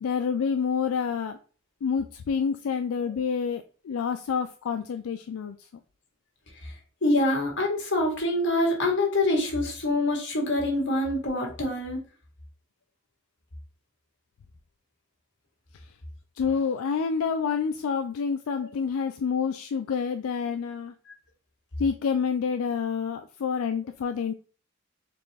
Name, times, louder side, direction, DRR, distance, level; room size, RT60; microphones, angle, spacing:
voice 1, 0.0-1.4 1.8-5.7 15.7-15.9 16.4-20.9 21.8-24.3, left 6 dB, 85° left, 7 dB, 0.4 m, -28 dB
voice 2, 6.5-12.0 18.6-18.7 21.1-21.2, left 1 dB, 60° left, 0 dB, 1.5 m, -26 dB
4.3 x 3.2 x 3.3 m, 0.38 s
head